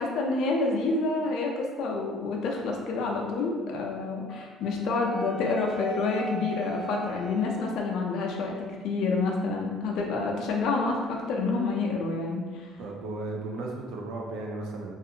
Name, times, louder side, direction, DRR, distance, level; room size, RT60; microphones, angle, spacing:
voice 1, 0.0-12.7, left 3 dB, 70° left, 0 dB, 0.4 m, -28 dB
Wind instrument woodwind instrument, 4.3-8.4, right 3 dB, 5° left, 0.3 m, -40 dB
voice 2, 12.8-14.9, right 2 dB, 75° right, 0 dB, 0.4 m, -35 dB
2.4 x 2.4 x 2.7 m, 1.4 s
cardioid pair, 120°, 0 cm